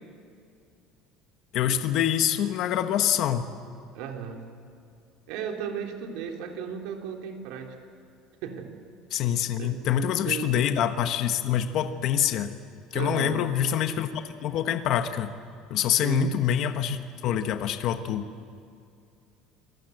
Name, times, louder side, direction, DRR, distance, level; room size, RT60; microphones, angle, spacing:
voice 1, 1.5-3.5 9.1-12.6 12.9-15.3 15.7-18.3, left 10 dB, 45° left, 8 dB, 1.1 m, -26 dB
voice 2, 3.9-4.5 5.3-7.7 8.4-8.7 9.6-9.8 10.2-10.5 12.9-13.4 16.0-16.3, right 8 dB, 65° right, 3 dB, 3.4 m, -35 dB
28.5 x 19.5 x 8.0 m, 2.5 s
cardioid pair, 175°, 0 cm